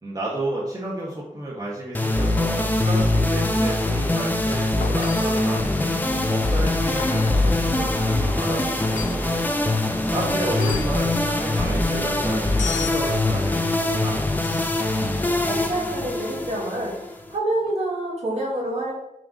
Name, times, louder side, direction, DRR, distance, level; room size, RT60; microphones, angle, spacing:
voice 1, 0.0-14.3, right 1 dB, 30° right, -6 dB, 1.4 m, -32 dB
sound 1, 1.9-17.3, left 2 dB, 15° left, 0.7 m, -23 dB
sound 2, 4.8-5.4 7.0-7.4 8.8-9.3 10.5-11.0 12.6-13.0 14.4-14.8 17.6-17.7, left 7 dB, 70° left, 0.4 m, -34 dB
voice 2, 15.1-17.0 17.3-18.9, right 1 dB, 55° right, -3 dB, 2.6 m, -27 dB
6.2 x 3.6 x 5.1 m, 0.83 s
wide cardioid pair, 120°, 13 cm